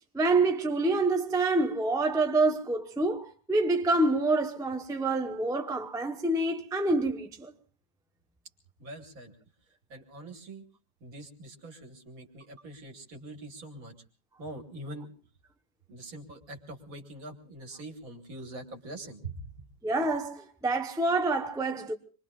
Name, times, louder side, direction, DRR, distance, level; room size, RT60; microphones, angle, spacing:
voice 1, 0.1-7.5 19.8-21.9, right 2 dB, 5° right, 0.7 m, -27 dB
voice 2, 8.8-9.3 9.9-10.6 11.0-13.9 14.4-15.1 15.9-19.6, right 2 dB, 60° right, 2.1 m, -43 dB
26.5 x 22.5 x 2.4 m
omnidirectional pair, 1.7 m